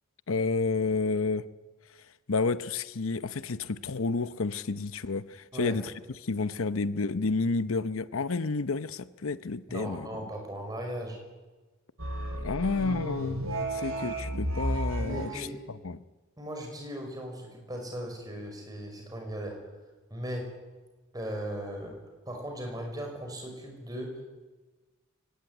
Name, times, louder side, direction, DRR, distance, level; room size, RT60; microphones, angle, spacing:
voice 1, 0.3-1.4 2.3-5.9 6.2-10.1 12.4-13.4 13.7-15.5 15.8-16.0, left 4 dB, 75° left, 14 dB, 0.8 m, -30 dB
voice 2, 9.7-11.2 15.1-15.6 16.4-19.6 20.1-20.5 21.1-24.2, equal, 20° right, 2 dB, 5.6 m, -38 dB
sound 1, 12.0-15.4, right 1 dB, 80° right, 5.5 m, -32 dB
23.5 x 18.5 x 9.6 m, 1.3 s
head